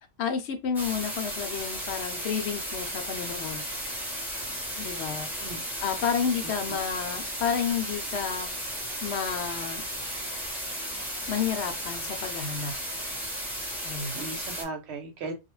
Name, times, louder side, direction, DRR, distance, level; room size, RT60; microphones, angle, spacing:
voice 1, 0.2-3.6 4.8-5.3 5.8-8.5 9.0-9.8 11.3-12.7 13.8-14.2, left 7 dB, 70° left, 0.8 m, -31 dB
sound 1, 0.7-14.6, equal, ahead, 0.6 m, -34 dB
voice 2, 5.4-5.9 6.7-6.8 14.1-15.3, right 3 dB, 65° right, 1.0 m, -37 dB
2.4 x 2.1 x 3.0 m
omnidirectional pair, 1.2 m